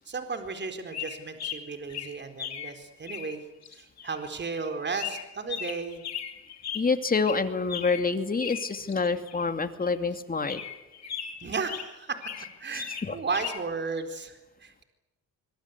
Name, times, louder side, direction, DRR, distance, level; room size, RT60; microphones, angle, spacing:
voice 1, 0.1-3.4 3.7-6.0 11.4-12.2 12.6-14.8, right 4 dB, 35° right, 7 dB, 4.3 m, -34 dB
sound 1, 0.9-2.8 3.1-8.1 8.4-9.5 9.8-9.9 10.5-11.9 12.2-13.6, left 8 dB, 60° left, 3.6 m, -38 dB
voice 2, 6.7-10.6 12.7-13.2, left 4 dB, 30° left, 8 dB, 2.6 m, -27 dB
25.5 x 22.5 x 8.3 m, 1.0 s
cardioid pair, 90°, 30 cm